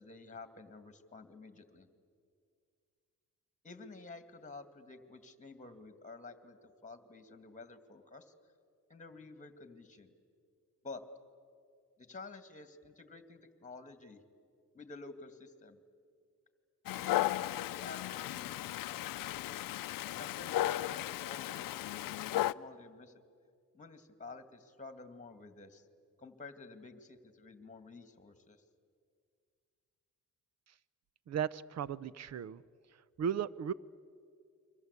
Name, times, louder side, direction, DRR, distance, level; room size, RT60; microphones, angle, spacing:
voice 1, 0.0-1.9 3.6-8.3 8.9-10.1 10.8-11.1 12.0-14.2 14.7-15.8 17.0-18.7 20.0-23.1 23.7-25.9 26.2-28.6, left 3 dB, 20° left, 9 dB, 2.2 m, -51 dB
Dog, 16.9-22.5, left 14 dB, 80° left, 0.6 m, -35 dB
voice 2, 31.3-32.6 33.2-33.7, right 8 dB, 50° right, 19 dB, 0.8 m, -35 dB
30.0 x 24.0 x 8.3 m, 2.3 s
cardioid pair, 125°, 34 cm